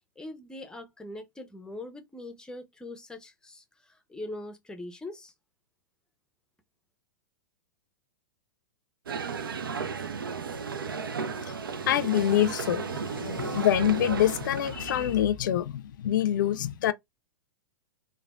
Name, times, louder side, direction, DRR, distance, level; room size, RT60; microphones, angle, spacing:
voice 1, 0.2-5.3, left 2 dB, 5° left, 0.5 m, -42 dB
sound 1, 9.1-15.2, right 5 dB, 85° right, 0.4 m, -34 dB
voice 2, 11.9-16.9, left 11 dB, 65° left, 0.4 m, -25 dB
3.3 x 2.1 x 2.3 m
hypercardioid pair, 105°, 11 cm